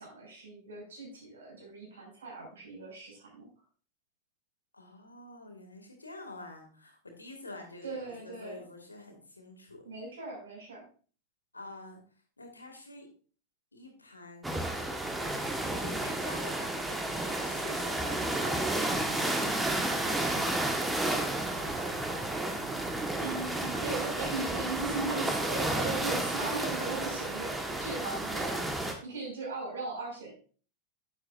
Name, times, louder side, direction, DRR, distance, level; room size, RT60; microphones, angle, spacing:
voice 1, 0.0-3.5 7.8-8.6 9.8-10.8 23.2-28.7 29.0-30.3, right 3 dB, 65° right, -1 dB, 5.7 m, -38 dB
voice 2, 4.7-9.8 11.5-12.0 12.4-13.1 13.7-14.6 15.5-21.7, left 2 dB, 80° left, 3 dB, 2.3 m, -47 dB
sound 1, 14.4-28.9, right 1 dB, 10° right, 1.5 m, -32 dB
10.5 x 9.4 x 2.6 m, 0.41 s
figure-of-eight pair, 90°, 0 cm